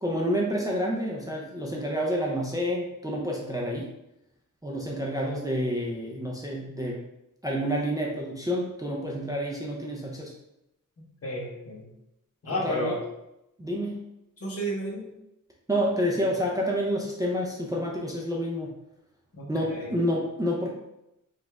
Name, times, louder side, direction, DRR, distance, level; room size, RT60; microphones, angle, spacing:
voice 1, 0.0-3.9 4.6-7.0 7.4-10.3 12.5-13.0 13.6-14.0 15.7-18.7 19.5-20.7, equal, 10° right, -3 dB, 0.4 m, -29 dB
voice 2, 11.2-11.8 12.4-13.0 14.4-15.1 19.4-20.0, equal, 45° left, -2 dB, 1.0 m, -32 dB
5.0 x 2.4 x 3.4 m, 0.86 s
wide cardioid pair, 180°, 33 cm